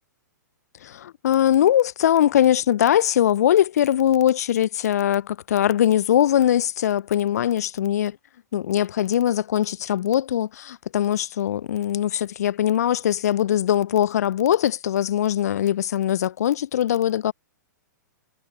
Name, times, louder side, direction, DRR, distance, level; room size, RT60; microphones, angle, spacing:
voice 1, 0.8-8.2 8.5-17.3, left 11 dB, 55° left, 0.9 m, -21 dB
figure-of-eight pair, 110°, 10 cm